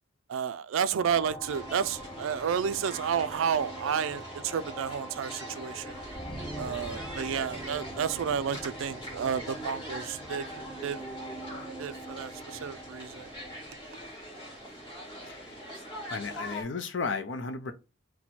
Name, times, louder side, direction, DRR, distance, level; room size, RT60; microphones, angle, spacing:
voice 1, 0.3-6.0 6.6-10.5 10.8-11.0 11.8-13.3, right 7 dB, 75° right, 0.3 m, -31 dB
sound 1, 1.0-15.1, right 1 dB, ahead, 0.6 m, -43 dB
sound 2, 1.4-16.6, equal, 25° left, 2.1 m, -43 dB
voice 2, 15.2-15.6 16.1-17.7, left 4 dB, 60° left, 0.5 m, -34 dB
4.4 x 2.1 x 4.1 m
head